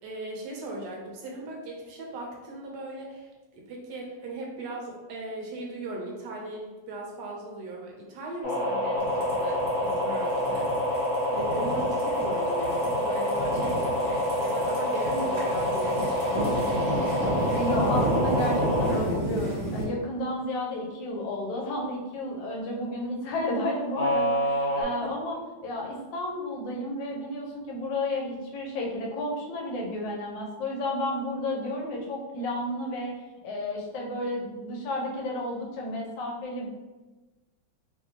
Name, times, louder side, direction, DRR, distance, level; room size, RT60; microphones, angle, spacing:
voice 1, 0.0-10.9 11.3-14.0 14.4-17.1 25.0-25.1, right 2 dB, 75° right, -1 dB, 1.2 m, -38 dB
sound 1, 8.4-19.0 23.9-24.8, left 1 dB, 60° left, 1.5 m, -27 dB
sound 2, 9.0-19.8, right 1 dB, 45° right, 1.3 m, -32 dB
voice 2, 17.5-25.4 25.6-33.1 33.4-36.7, left 1 dB, 80° left, -1 dB, 1.4 m, -32 dB
3.2 x 2.6 x 2.8 m, 1.2 s
omnidirectional pair, 2.0 m